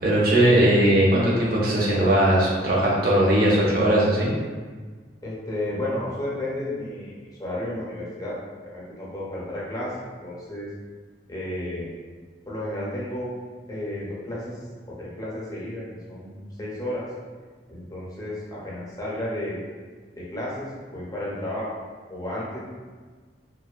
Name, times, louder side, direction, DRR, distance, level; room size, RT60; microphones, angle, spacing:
voice 1, 0.0-4.3, right 1 dB, 55° right, -5 dB, 0.6 m, -19 dB
voice 2, 5.2-7.1 7.4-8.4 8.6-10.7 11.3-11.9 12.5-13.3 13.7-14.6 15.0-17.0 17.7-19.6 20.2-21.7 22.1-22.6, left 1 dB, 20° left, -7 dB, 0.6 m, -32 dB
2.5 x 2.2 x 2.4 m, 1.5 s
head